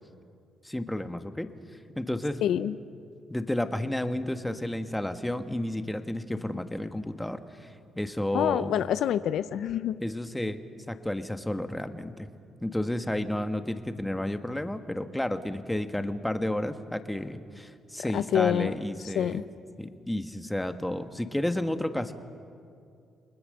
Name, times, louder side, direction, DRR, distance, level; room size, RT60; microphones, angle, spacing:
voice 1, 0.6-1.5 2.0-2.4 3.3-8.7 10.0-10.6 10.9-12.3 12.6-19.4 19.8-22.1, left 1 dB, 5° left, 8 dB, 1.4 m, -31 dB
voice 2, 2.4-2.7 8.3-10.0 18.1-18.8 19.2-19.4, left 10 dB, 75° left, 14 dB, 0.6 m, -26 dB
29.5 x 20.5 x 6.7 m, 2.4 s
cardioid pair, 90°, 0 cm